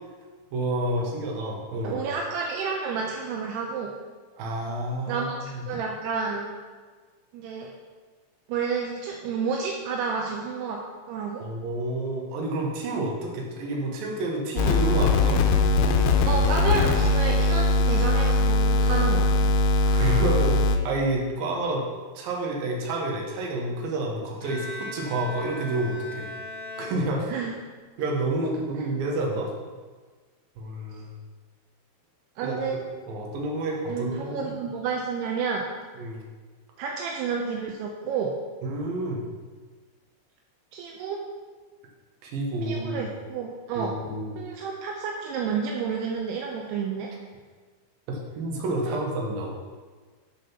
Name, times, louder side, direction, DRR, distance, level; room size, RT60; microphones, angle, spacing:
voice 1, 0.5-2.0 4.4-5.6 11.4-15.4 19.8-21.9 22.1-26.3 26.8-27.3 28.0-29.5 30.6-31.1 32.4-34.5 36.0-36.2 38.6-39.3 42.2-43.0 43.8-44.4 48.1-49.5, right 2 dB, 65° right, -1 dB, 2.6 m, -29 dB
voice 2, 1.8-3.9 5.1-6.5 7.3-7.7 8.5-10.8 11.1-11.5 16.3-19.5 27.3-27.6 32.4-32.8 33.9-35.7 36.8-38.3 40.7-41.2 42.6-44.0 44.4-47.1 48.9-49.0, right 5 dB, 80° right, 0 dB, 2.4 m, -30 dB
sound 1, 14.6-20.8, left 3 dB, 80° left, 2.7 m, -21 dB
Bowed string instrument, 24.4-27.7, left 1 dB, 30° left, 2.2 m, -39 dB
9.2 x 5.1 x 5.6 m, 1.4 s
omnidirectional pair, 5.3 m